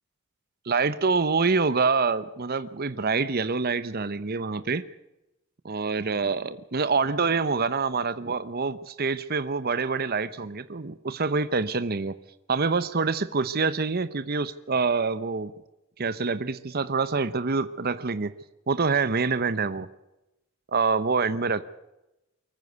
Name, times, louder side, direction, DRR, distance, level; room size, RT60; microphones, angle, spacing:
voice 1, 0.6-4.8 5.6-12.1 12.5-15.5 16.0-18.3 18.7-19.9 20.7-21.6, right 4 dB, 45° right, 13 dB, 0.8 m, -26 dB
23.5 x 14.5 x 8.1 m, 0.95 s
head